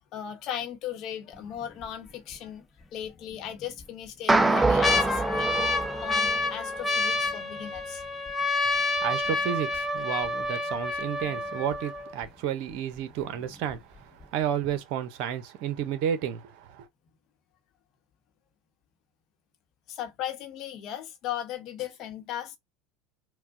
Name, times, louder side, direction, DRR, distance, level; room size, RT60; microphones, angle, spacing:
voice 1, 0.1-2.6 2.9-5.7 6.0-8.0 19.9-22.6, left 10 dB, 55° left, 0.9 m, -37 dB
sound 1, 1.3-1.8 2.3-2.4 3.3-3.8 4.3-12.3 13.0-13.1 13.2-13.7 14.2-14.3, left 2 dB, 15° left, 0.8 m, -29 dB
sound 2, 4.3-6.8, right 3 dB, 15° right, 0.4 m, -25 dB
voice 2, 9.0-16.9, right 9 dB, 60° right, 0.7 m, -31 dB
4.4 x 2.2 x 2.6 m
hypercardioid pair, 80°, 0 cm